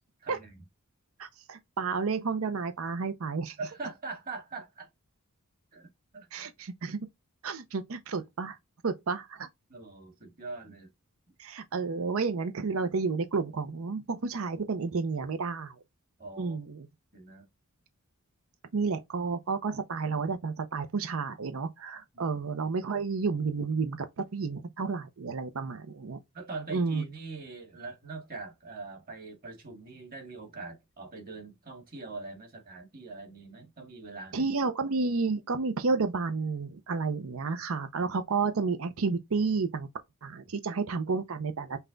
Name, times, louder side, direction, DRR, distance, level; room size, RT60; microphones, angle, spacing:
voice 1, 0.2-0.6 3.6-4.9 5.7-5.9 6.1-6.5 9.7-10.9 16.2-16.6 17.1-17.5 22.1-22.4 26.3-34.5, right 3 dB, 40° right, 1.9 m, -42 dB
voice 2, 1.2-3.6 6.3-7.0 7.4-8.6 8.8-9.5 11.4-15.7 16.4-16.9 18.7-24.1 24.3-26.2 26.7-27.0 34.3-39.9 40.2-41.8, right 4 dB, 65° right, 0.6 m, -31 dB
5.6 x 2.2 x 3.8 m
head